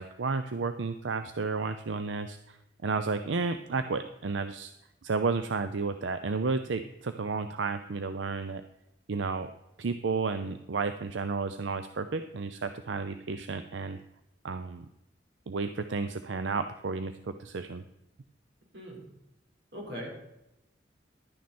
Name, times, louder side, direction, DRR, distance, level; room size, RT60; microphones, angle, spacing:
voice 1, 0.0-2.6 2.8-4.7 5.0-8.6 9.1-9.5 9.8-14.0 14.4-14.9 15.5-17.8, right 4 dB, 90° right, 10 dB, 0.6 m, -32 dB
voice 2, 19.7-20.1, equal, 65° right, -2 dB, 4.5 m, -40 dB
12.0 x 9.4 x 4.3 m, 0.90 s
head